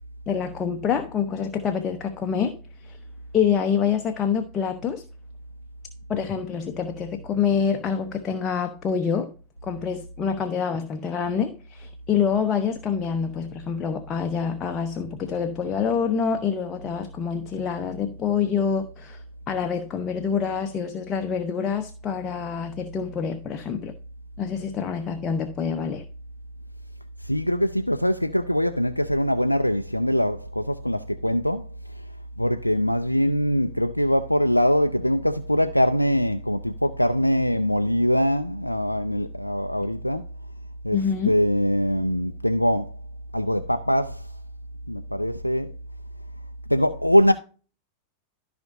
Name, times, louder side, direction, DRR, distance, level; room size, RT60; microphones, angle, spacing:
voice 1, 0.3-3.0 3.3-5.0 6.1-9.3 9.6-23.9 24.4-26.0 40.9-41.3, left 7 dB, 25° left, 0.9 m, -26 dB
voice 2, 27.2-40.3 40.8-42.9 43.3-44.3 44.9-45.7 46.7-47.3, equal, 90° left, 0.4 m, -23 dB
13.5 x 5.1 x 2.7 m
figure-of-eight pair, 90°, 0 cm